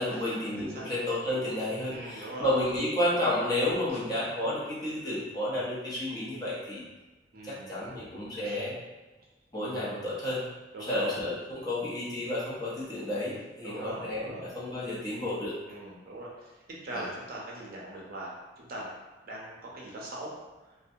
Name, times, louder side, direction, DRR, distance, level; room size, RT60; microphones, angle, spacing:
voice 1, 0.0-6.8 7.4-8.8 9.5-10.4 10.8-15.5 16.9-17.0, left 1 dB, 20° left, -8 dB, 0.7 m, -31 dB
voice 2, 0.6-0.9 1.9-2.5 7.3-7.7 8.4-8.5 10.7-11.2 13.6-14.5 15.7-16.6 16.8-18.9 19.2-20.3, right 1 dB, 50° right, -4 dB, 0.6 m, -41 dB
2.6 x 2.1 x 2.6 m, 1.2 s
head